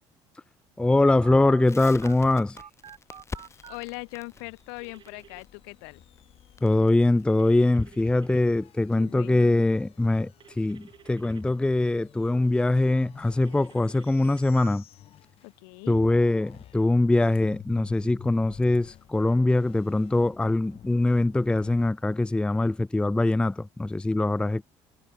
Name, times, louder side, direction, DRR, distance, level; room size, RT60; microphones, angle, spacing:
voice 1, 0.8-2.6 6.6-14.8 15.9-24.6, left 2 dB, 10° left, 0.6 m, -23 dB
Telephone, 1.2-3.8 4.8-5.4 7.4-8.4 10.4-11.4 13.4-14.7, right 8 dB, 40° right, 2.6 m, -49 dB
Crackle, 1.7-8.5, left 4 dB, 25° left, 4.1 m, -45 dB
sound 1, 3.3-15.6 15.9-21.9, left 12 dB, 55° left, 3.1 m, -51 dB
voice 2, 3.7-6.0 9.0-9.6 15.4-16.0, left 40 dB or more, 90° left, 1.2 m, -40 dB
supercardioid pair, 100°, 12 cm